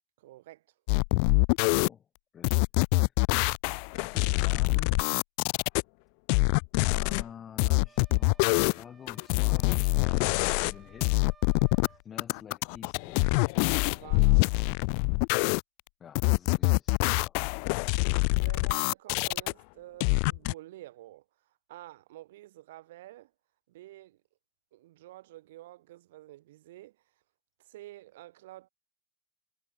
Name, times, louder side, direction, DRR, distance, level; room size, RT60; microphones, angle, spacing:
voice 1, 0.2-0.6 13.8-14.5 18.4-21.2 21.7-23.3 23.7-24.2 24.7-27.0 27.6-28.7, right 16 dB, 55° right, 2.4 m, -49 dB
sound 1, 0.9-1.9 2.4-5.8 6.3-7.2 7.6-8.8 9.1-10.8 11.0-11.9 12.2-15.6 16.1-19.5 20.0-20.5, left 40 dB or more, 45° left, 0.3 m, -25 dB
voice 2, 1.7-2.1 2.3-2.7 3.0-3.1 4.0-5.0 6.9-11.2 11.9-13.4 16.0-18.0, left 8 dB, 25° left, 3.8 m, -49 dB
sound 2, 7.8-12.1, right 7 dB, 20° right, 3.3 m, -60 dB
figure-of-eight pair, 90°, 0 cm